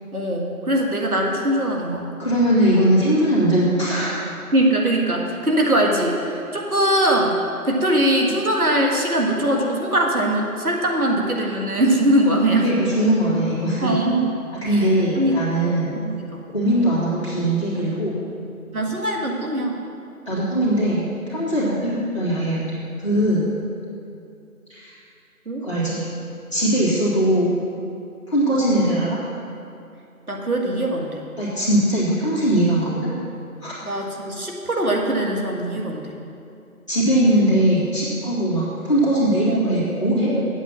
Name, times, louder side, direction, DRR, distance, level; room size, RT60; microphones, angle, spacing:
voice 1, 0.1-2.2 4.5-7.4 7.6-12.7 13.8-14.3 14.7-14.8 15.1-16.4 16.8-17.0 18.7-19.8 21.6-21.8 25.5-25.6 30.3-31.2 33.8-36.2 39.5-40.5, right 1 dB, 75° right, -1 dB, 1.9 m, -22 dB
voice 2, 2.2-4.1 12.6-13.9 14.6-15.9 16.5-18.2 20.3-23.5 24.7-25.0 25.6-26.1 26.5-27.6 28.3-29.2 31.4-33.1 33.6-33.7 36.9-40.3, right 1 dB, 20° left, -10 dB, 2.2 m, -20 dB
9.4 x 8.3 x 6.0 m, 2.6 s
figure-of-eight pair, 170°, 44 cm